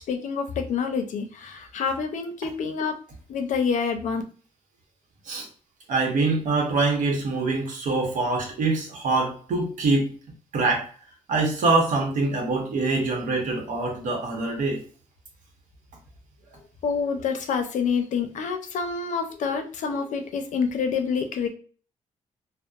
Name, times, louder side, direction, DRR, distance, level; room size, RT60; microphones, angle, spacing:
voice 1, 0.0-3.0 3.3-4.2 16.8-21.5, left 5 dB, 70° left, 6 dB, 0.5 m, -27 dB
voice 2, 5.9-10.1 10.5-10.8 11.3-14.8, right 3 dB, 80° right, 1 dB, 0.9 m, -24 dB
2.8 x 2.0 x 2.4 m, 0.41 s
cardioid pair, 130°, 13 cm